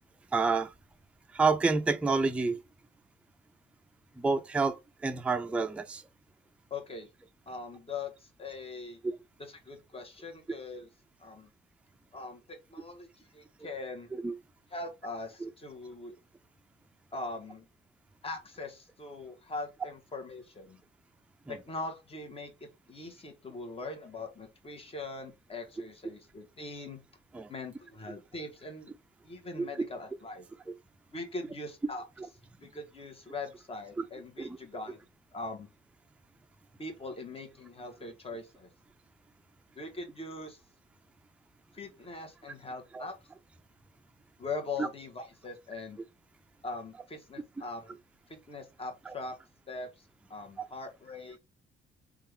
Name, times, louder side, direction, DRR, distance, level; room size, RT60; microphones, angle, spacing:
voice 1, 0.3-0.7 1.3-2.6 4.2-6.0 9.0-9.2 14.1-14.3 15.4-15.5 21.5-21.6 27.3-27.5 29.6-29.7 34.0-34.1 34.4-34.6 42.9-43.0 44.8-44.9 49.1-49.2, right 4 dB, 5° right, 0.3 m, -29 dB
voice 2, 6.7-7.1 7.5-9.0 9.5-10.9 11.2-11.5 12.1-14.1 14.7-16.2 17.1-17.6 18.2-20.8 21.5-22.5 22.9-27.0 27.5-28.9 29.2-30.4 31.1-32.0 32.6-35.0 35.3-35.7 36.8-38.7 39.7-40.6 41.7-43.2 44.4-46.0 46.6-48.0 48.3-49.3 49.7-51.4, left 3 dB, 30° left, 1.1 m, -41 dB
3.4 x 2.4 x 3.2 m
cardioid pair, 90°, 20 cm